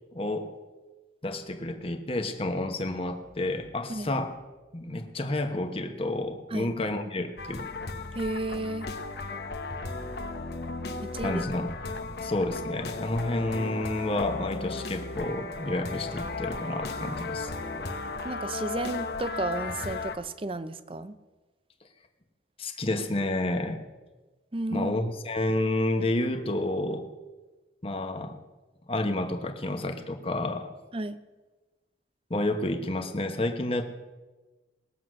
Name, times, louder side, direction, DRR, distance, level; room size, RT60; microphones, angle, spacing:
voice 1, 0.1-0.5 1.2-4.3 4.7-7.7 11.2-17.5 22.6-23.8 24.7-27.1 27.8-28.4 28.9-30.7 32.3-33.8, left 1 dB, 35° left, 6 dB, 1.1 m, -30 dB
sound 1, 7.4-20.2, left 3 dB, 65° left, 1.0 m, -35 dB
voice 2, 8.1-8.9 11.0-11.4 18.2-21.2 24.5-24.9 30.9-31.2, right 2 dB, 30° right, 13 dB, 0.6 m, -32 dB
20.0 x 7.8 x 6.3 m, 1.2 s
head